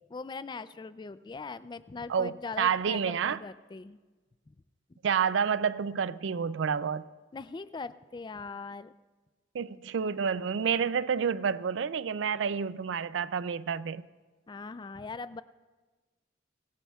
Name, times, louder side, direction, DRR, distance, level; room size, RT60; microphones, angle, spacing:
voice 1, 0.1-4.0 7.3-8.9 14.5-15.4, left 4 dB, 25° left, 0.3 m, -40 dB
voice 2, 2.1-3.4 5.0-7.0 9.5-14.0, right 7 dB, 75° right, 0.4 m, -29 dB
24.0 x 17.0 x 2.4 m
head